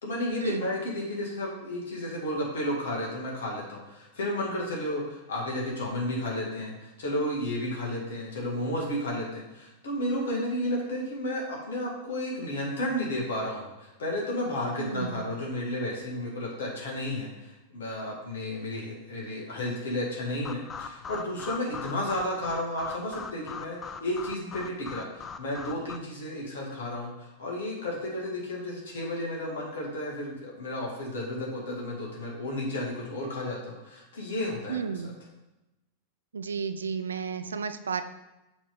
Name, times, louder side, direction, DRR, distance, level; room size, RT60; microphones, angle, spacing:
voice 1, 0.0-35.1, left 1 dB, 60° left, -3 dB, 1.9 m, -32 dB
voice 2, 14.8-15.2 34.7-35.2 36.3-38.0, right 6 dB, 70° right, 10 dB, 0.4 m, -32 dB
sound 1, 20.4-26.0, left 6 dB, 20° left, 0.4 m, -41 dB
6.1 x 3.6 x 5.2 m, 0.98 s
figure-of-eight pair, 90°, 0 cm